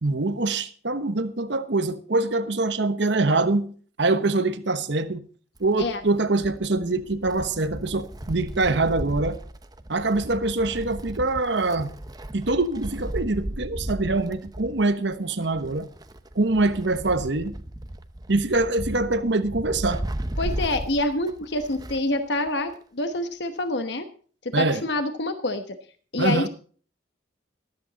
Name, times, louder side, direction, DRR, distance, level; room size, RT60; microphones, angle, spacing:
voice 1, 0.0-3.7 4.0-5.3 5.6-9.4 9.9-11.9 12.3-15.9 16.3-17.6 18.3-20.0 24.5-24.8 26.2-26.5, right 2 dB, 65° right, 1.1 m, -24 dB
Wind, 5.6-22.2 22.5-22.6 23.6-23.7, right 1 dB, 20° right, 0.8 m, -35 dB
voice 2, 20.4-24.1 24.4-25.8 26.1-26.5, left 2 dB, 65° left, 1.1 m, -26 dB
14.0 x 13.0 x 4.0 m
head